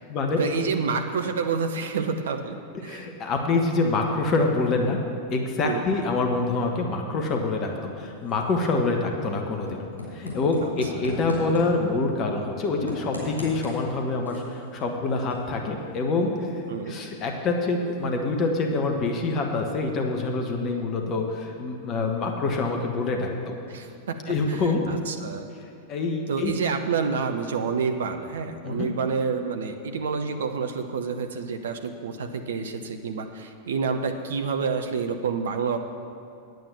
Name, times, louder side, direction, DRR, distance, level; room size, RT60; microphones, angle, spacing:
voice 1, 0.4-3.1 5.6-5.8 10.6-10.7 11.0-11.1 16.7-16.9 23.7-24.2 24.5-25.5 26.3-35.8, right 5 dB, 60° right, 6 dB, 0.6 m, -28 dB
voice 2, 2.8-5.0 5.3-9.8 10.1-23.6 24.3-24.8 25.9-26.5 28.6-28.9, left 3 dB, 35° left, 2 dB, 1.2 m, -26 dB
sound 1, 7.5-19.2, left 1 dB, 90° left, 3.4 m, -41 dB
9.3 x 8.9 x 6.9 m, 2.5 s
figure-of-eight pair, 90°, 0 cm